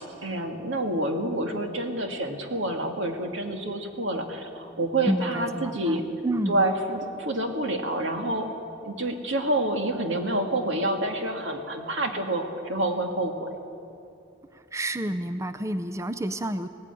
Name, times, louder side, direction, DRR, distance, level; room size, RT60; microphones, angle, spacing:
voice 1, 0.2-6.0 6.5-8.5 8.8-13.5, right 1 dB, 85° right, 4 dB, 2.1 m, -28 dB
voice 2, 5.1-6.7 14.5-16.7, right 1 dB, 15° right, 11 dB, 0.4 m, -29 dB
18.5 x 15.5 x 9.1 m, 2.8 s
head